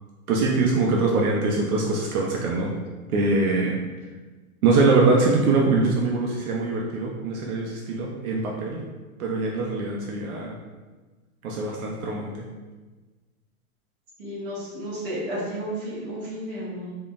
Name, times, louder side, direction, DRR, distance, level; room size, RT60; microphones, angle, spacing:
voice 1, 0.3-2.7 3.1-3.8 4.6-8.8 9.2-10.6 11.4-12.3, right 3 dB, 80° right, -1 dB, 0.6 m, -23 dB
voice 2, 14.2-16.9, right 1 dB, 40° right, -7 dB, 1.1 m, -32 dB
3.7 x 2.1 x 2.4 m, 1.3 s
hypercardioid pair, 165°, 43 cm